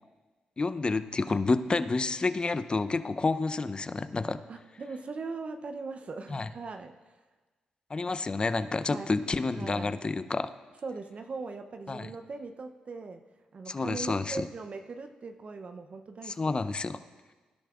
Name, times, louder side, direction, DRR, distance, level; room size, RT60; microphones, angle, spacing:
voice 1, 0.6-4.4 6.3-6.5 7.9-10.5 11.9-12.1 13.7-14.4 16.2-17.0, left 3 dB, 35° left, 12 dB, 0.6 m, -29 dB
voice 2, 4.5-7.2 8.9-9.1 9.6-9.9 10.8-13.2 13.5-16.4, right 4 dB, 50° right, 6 dB, 0.6 m, -40 dB
18.5 x 10.5 x 2.4 m, 1.3 s
supercardioid pair, 50°, 3 cm